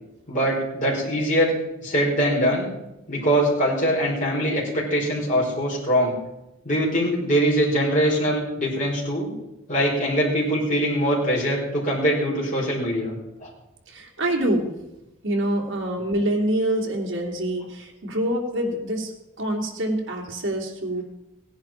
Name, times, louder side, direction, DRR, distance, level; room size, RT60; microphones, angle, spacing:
voice 1, 0.3-1.5 1.8-2.7 3.1-6.1 6.6-9.3 9.7-13.5, equal, 40° left, -4 dB, 4.9 m, -22 dB
voice 2, 13.9-14.7 15.2-19.1 19.4-21.0, right 1 dB, 65° right, 1 dB, 2.8 m, -25 dB
17.0 x 10.5 x 4.5 m, 0.92 s
head